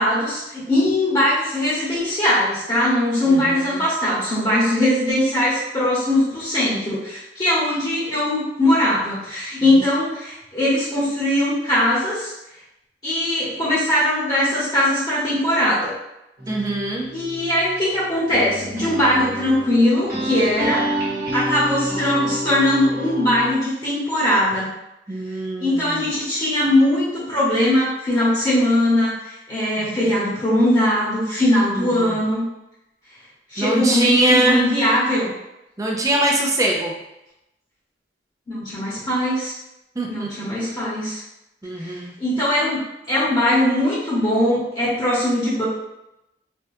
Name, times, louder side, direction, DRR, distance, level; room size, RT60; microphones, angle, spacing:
voice 1, 0.0-12.3 13.0-15.9 17.1-20.8 21.3-24.7 25.6-32.4 33.5-35.3 38.5-39.5 40.1-41.2 41.8-42.8 43.1-45.6, left 1 dB, 25° left, -10 dB, 1.1 m, -20 dB
voice 2, 3.3-3.8 16.5-17.1 25.1-26.1 29.8-30.1 31.8-32.2 33.6-34.7 35.8-36.9 40.0-40.3 41.6-42.1, right 1 dB, 20° right, -1 dB, 0.4 m, -22 dB
sound 1, 16.4-23.5, right 1 dB, 55° right, 1.1 m, -29 dB
3.3 x 2.4 x 2.6 m, 0.89 s
head